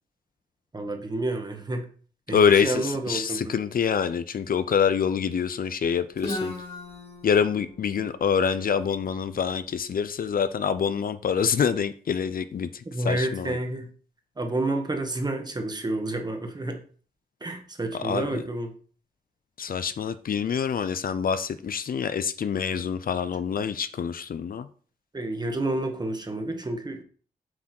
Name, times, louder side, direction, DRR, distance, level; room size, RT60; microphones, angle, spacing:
voice 1, 0.7-1.9 2.3-3.5 12.8-13.9 14.4-16.8 17.4-18.7 25.1-27.0, right 2 dB, 25° right, 1.6 m, -29 dB
voice 2, 2.3-6.5 7.2-13.6 17.9-18.4 19.6-24.7, left 7 dB, 60° left, 0.6 m, -26 dB
Guitar, 6.2-9.9, left 2 dB, 35° left, 2.3 m, -38 dB
7.8 x 6.1 x 4.5 m
wide cardioid pair, 110°, 17 cm